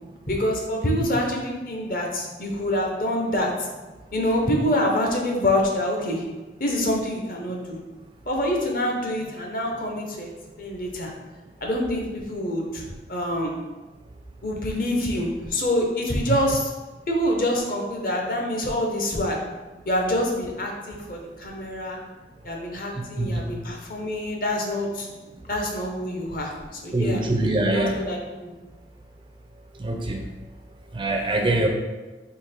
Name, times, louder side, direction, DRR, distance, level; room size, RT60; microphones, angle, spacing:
voice 1, 0.3-3.5 4.1-6.2 6.6-7.8 8.3-10.3 10.6-11.1 11.6-12.8 13.1-13.5 14.4-16.7 17.1-19.4 19.8-22.0 22.4-25.1 25.5-26.5 26.8-27.2 27.7-28.5, left 1 dB, 50° left, 0 dB, 0.7 m, -26 dB
voice 2, 23.2-23.5 26.9-28.0 29.8-30.2 30.9-31.7, right 2 dB, 25° right, 2 dB, 0.4 m, -23 dB
3.9 x 2.8 x 4.2 m, 1.2 s
head